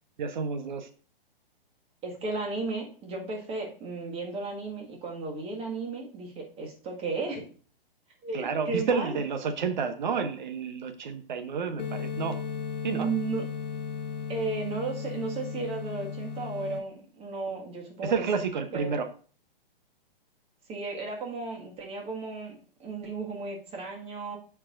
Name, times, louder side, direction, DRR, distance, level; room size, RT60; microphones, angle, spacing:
voice 1, 0.2-0.9 8.3-12.4 12.8-13.1 18.0-19.1, right 5 dB, 50° right, 9 dB, 0.9 m, -30 dB
voice 2, 2.0-7.5 8.2-9.2 12.9-13.5 14.3-18.2 18.7-18.9 20.7-24.4, right 3 dB, 20° right, 1 dB, 1.8 m, -34 dB
sound 1, 11.8-16.8, left 6 dB, 50° left, 1.2 m, -35 dB
14.0 x 4.8 x 2.5 m, 0.41 s
figure-of-eight pair, 115°, 29 cm